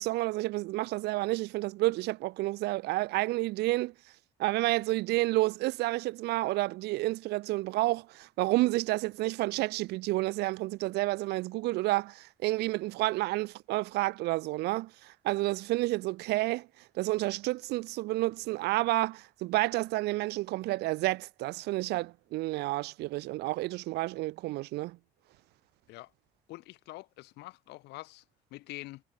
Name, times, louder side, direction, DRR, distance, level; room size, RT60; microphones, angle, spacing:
voice 1, 0.0-3.9 4.4-16.7 16.9-25.0, right 19 dB, 75° right, 0.4 m, -30 dB
voice 2, 26.5-28.2 28.5-29.0, left 19 dB, 90° left, 3.5 m, -45 dB
cardioid pair, 110°, 17 cm